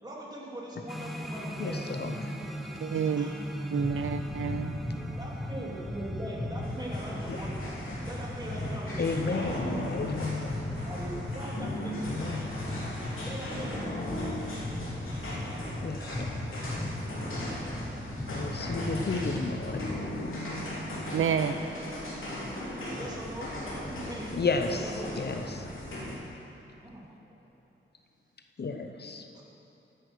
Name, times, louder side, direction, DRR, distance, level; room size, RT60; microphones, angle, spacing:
voice 1, 0.0-1.9 3.0-3.4 5.1-7.7 8.0-9.7 10.8-12.0 13.2-13.8 15.2-16.5 22.9-25.2 26.8-27.4 29.3-29.4, right 1 dB, 20° right, -5 dB, 3.1 m, -41 dB
sound 1, 0.9-14.2, equal, ahead, 1.0 m, -41 dB
voice 2, 1.6-2.3 7.3-7.4 9.0-10.5 12.1-12.5 15.8-16.6 18.3-19.9 24.3-25.7 28.6-29.2, left 4 dB, 50° left, 6 dB, 0.8 m, -33 dB
voice 3, 2.8-3.3 3.7-4.8 21.1-21.5, right 7 dB, 80° right, 10 dB, 0.5 m, -29 dB
sound 2, 3.8-20.2, left 1 dB, 15° left, 1.4 m, -37 dB
sound 3, 6.6-26.1, left 1 dB, 75° left, 3.3 m, -38 dB
15.0 x 9.5 x 6.3 m, 2.9 s
wide cardioid pair, 95°, 21 cm